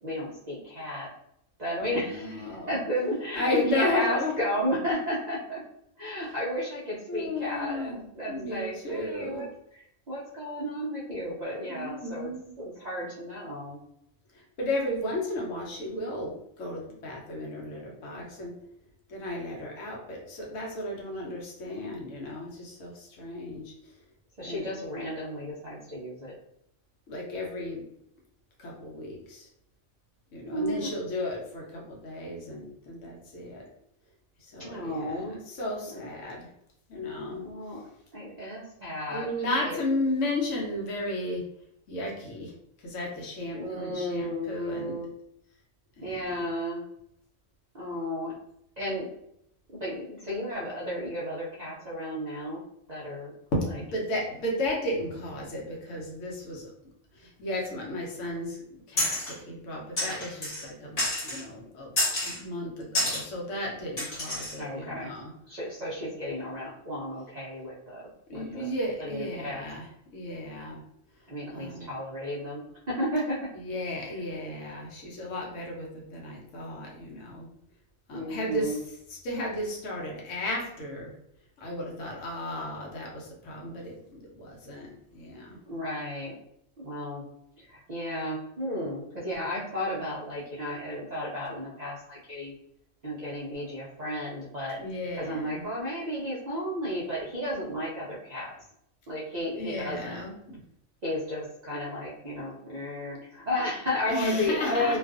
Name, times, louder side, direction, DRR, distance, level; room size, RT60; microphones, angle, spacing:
voice 1, 0.0-1.1 1.6-5.6 6.0-9.5 10.1-12.3 12.6-13.8 24.4-26.3 30.5-30.9 34.6-35.4 35.9-36.0 37.4-37.8 38.1-39.3 39.6-39.8 43.5-45.1 46.0-46.8 47.7-48.3 48.8-49.1 49.8-52.6 52.9-53.3 57.9-58.0 64.6-65.1 65.5-68.0 68.3-68.7 69.0-69.6 71.3-73.5 74.0-74.1 78.1-78.8 85.7-86.4 86.8-87.2 87.6-92.5 93.0-94.8 95.2-98.5 99.1-100.2 101.0-105.0, equal, 60° right, -7 dB, 0.4 m, -33 dB
voice 2, 1.8-2.7 3.4-4.3 6.2-6.3 7.1-8.0 8.3-9.4 11.7-12.5 14.3-18.6 19.1-23.7 24.4-24.7 27.1-27.8 28.6-29.5 30.3-33.7 34.4-36.5 36.9-37.4 37.7-37.8 39.1-41.4 41.9-42.5 42.8-45.0 46.0-46.4 53.5-53.6 53.9-56.7 57.1-58.6 58.9-61.9 62.2-65.3 68.3-69.9 70.1-70.8 71.5-71.9 73.5-77.5 78.1-81.1 81.6-85.6 94.8-95.6 99.5-100.6 104.1-105.0, left 1 dB, 70° left, -2 dB, 1.0 m, -34 dB
sound 1, 59.0-59.3 60.0-60.7 61.0-61.4 62.0-62.4 62.9-63.2 64.0-64.6, left 1 dB, 45° left, 1.1 m, -29 dB
2.5 x 2.3 x 2.3 m, 0.75 s
omnidirectional pair, 1.4 m